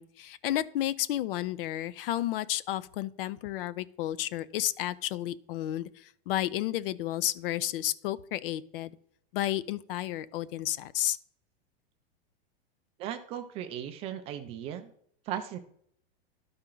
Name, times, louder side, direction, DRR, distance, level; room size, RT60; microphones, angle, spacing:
voice 1, 0.0-9.0 9.3-11.2, left 13 dB, 60° left, 18 dB, 0.5 m, -32 dB
voice 2, 13.0-14.9 15.3-15.6, right 10 dB, 20° right, 7 dB, 0.3 m, -37 dB
12.5 x 4.3 x 3.8 m, 0.66 s
supercardioid pair, 155°, 32 cm